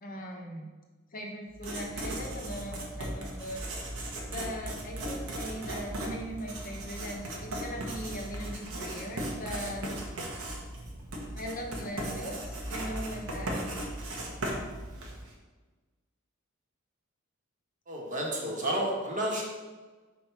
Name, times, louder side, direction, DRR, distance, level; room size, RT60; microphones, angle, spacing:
voice 1, 0.0-0.7 1.1-3.6 4.3-9.9 11.3-13.6, equal, 40° left, 1 dB, 0.9 m, -39 dB
Writing, 1.5-15.3, right 1 dB, 85° right, 1.3 m, -37 dB
voice 2, 17.9-19.4, right 1 dB, 40° right, -1 dB, 1.3 m, -31 dB
4.6 x 4.4 x 5.7 m, 1.3 s
head